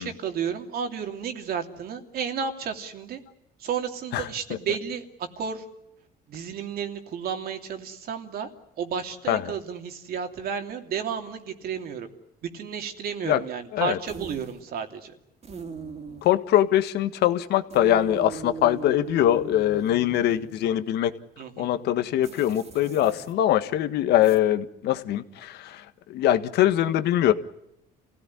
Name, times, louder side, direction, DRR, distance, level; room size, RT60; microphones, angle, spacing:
voice 1, 0.0-3.2 3.6-5.6 6.3-8.5 8.8-12.1 12.4-15.1 21.4-21.7, right 7 dB, 65° right, 5 dB, 3.0 m, -32 dB
sound 1, 14.1-14.7 15.4-16.4 17.7-20.7 22.2-23.3 24.2-24.4, right 5 dB, 40° right, 3.0 m, -40 dB
voice 2, 16.2-21.1 21.6-27.3, left 12 dB, 80° left, 10 dB, 1.6 m, -23 dB
27.5 x 16.5 x 9.8 m, 0.84 s
cardioid pair, 110°, 17 cm